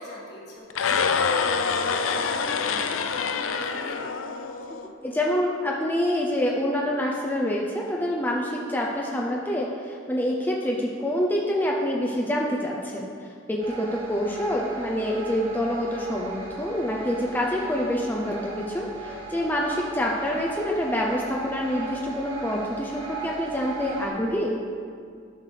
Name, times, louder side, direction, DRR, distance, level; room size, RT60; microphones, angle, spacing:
voice 1, 0.0-4.0 14.3-14.4, left 1 dB, 55° left, -4 dB, 1.7 m, -41 dB
sound 1, 0.7-4.9, left 5 dB, 85° left, 0.5 m, -26 dB
voice 2, 4.7-24.6, left 1 dB, 10° left, -2 dB, 0.5 m, -27 dB
sound 2, 13.6-24.1, right 4 dB, 65° right, 2.3 m, -37 dB
11.5 x 6.5 x 3.3 m, 2.3 s
head